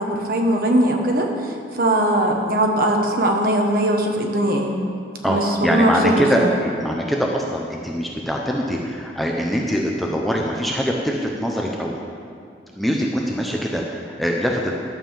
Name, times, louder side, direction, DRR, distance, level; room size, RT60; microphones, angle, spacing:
voice 1, 0.0-4.7 5.3-6.5, right 1 dB, 55° right, 2 dB, 1.2 m, -20 dB
voice 2, 5.2-12.0 12.8-14.7, equal, ahead, -1 dB, 0.6 m, -23 dB
11.5 x 5.5 x 7.2 m, 2.3 s
head